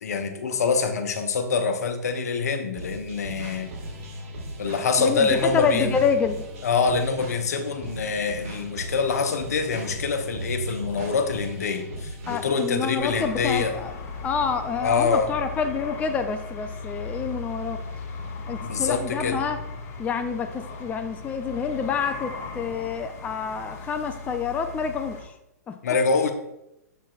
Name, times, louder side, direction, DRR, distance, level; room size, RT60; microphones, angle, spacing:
voice 1, 0.0-3.7 4.6-5.9 6.6-13.7 14.8-15.3 18.6-19.4 25.8-26.3, left 5 dB, 65° left, 7 dB, 0.9 m, -25 dB
sound 1, 2.8-12.9, right 1 dB, 55° right, 1.9 m, -37 dB
voice 2, 5.0-6.4 12.3-13.9 14.2-17.8 18.5-19.6 20.0-25.2 25.7-25.8, left 6 dB, 15° left, 7 dB, 0.4 m, -27 dB
sound 2, 13.0-25.2, left 4 dB, 30° left, 2.1 m, -37 dB
7.3 x 7.1 x 2.4 m, 0.85 s
figure-of-eight pair, 110°, 9 cm